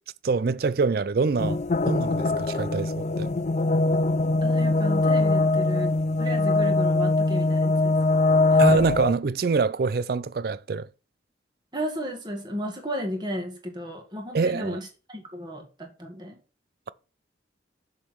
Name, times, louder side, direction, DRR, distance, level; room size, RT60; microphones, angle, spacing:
voice 1, 0.2-1.6 1.9-3.3 8.6-10.9 14.3-14.8, right 4 dB, 55° right, 0.4 m, -25 dB
sound 1, 1.4-9.1, left 2 dB, 40° left, 0.4 m, -22 dB
voice 2, 4.4-5.9 6.2-8.0 8.5-8.6 11.7-16.4, equal, 25° right, 1.9 m, -34 dB
6.7 x 6.5 x 4.7 m
head